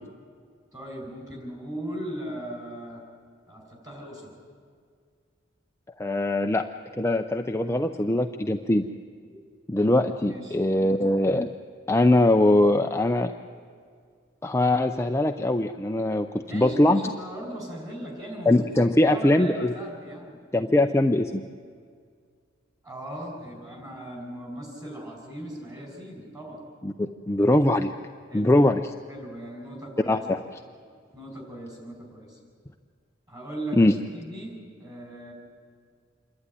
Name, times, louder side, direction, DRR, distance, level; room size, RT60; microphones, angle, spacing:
voice 1, 0.7-3.0 3.5-4.4 10.3-10.9 16.5-18.7 19.0-20.4 22.8-26.7 28.3-28.5 29.1-30.2 31.1-32.4 33.3-35.3, right 1 dB, 20° right, 0 dB, 5.2 m, -38 dB
voice 2, 6.0-6.7 7.0-8.9 9.7-11.5 11.9-13.3 14.4-17.0 18.5-19.7 20.5-21.4 26.8-27.9 28.3-28.8 30.1-30.4 33.8-33.9, left 1 dB, 15° left, 5 dB, 0.5 m, -22 dB
27.0 x 12.0 x 9.8 m, 2.1 s
head